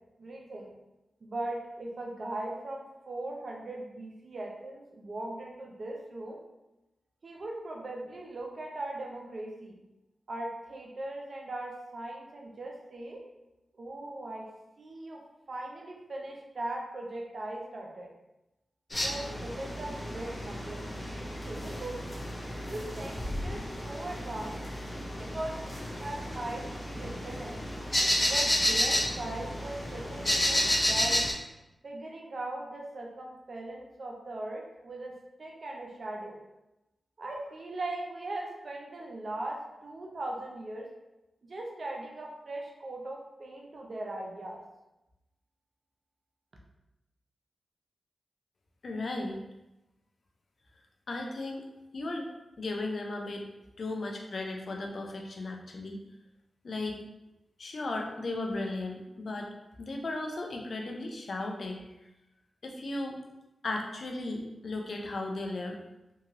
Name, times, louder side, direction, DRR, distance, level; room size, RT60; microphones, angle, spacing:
voice 1, 0.2-0.7 1.2-6.4 7.2-9.8 10.3-13.3 13.8-14.5 14.8-15.2 15.5-18.1 19.0-21.0 21.5-22.0 22.6-24.6 25.2-27.6 28.3-31.3 31.8-36.4 37.2-40.9 41.4-44.6, right 2 dB, 60° right, 0 dB, 0.6 m, -39 dB
sound 1, 18.9-31.3, equal, 30° left, 0.6 m, -31 dB
voice 2, 48.8-49.4 51.1-51.6 51.9-52.3 52.6-53.5 53.8-56.0 56.6-57.0 57.6-59.5 59.8-61.8 62.6-63.2 63.6-65.8, left 2 dB, 65° left, 1 dB, 0.5 m, -35 dB
2.8 x 2.8 x 2.5 m, 0.96 s
cardioid pair, 40°, 0 cm